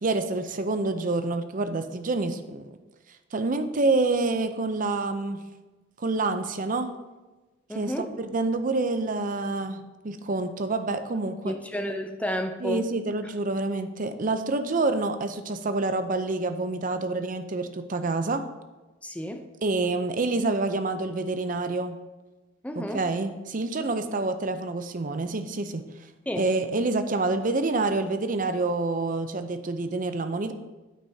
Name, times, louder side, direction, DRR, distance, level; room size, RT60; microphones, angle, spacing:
voice 1, 0.0-2.7 3.3-5.4 6.0-6.9 7.7-7.9 8.2-11.6 12.6-18.4 19.6-22.0 22.8-25.8 26.4-30.5, right 3 dB, 45° right, 9 dB, 0.6 m, -27 dB
voice 2, 7.7-8.1 11.4-12.9 19.0-19.5 22.6-23.1 26.3-26.5, equal, 5° left, 5 dB, 0.6 m, -31 dB
9.2 x 8.4 x 2.8 m, 1.2 s
head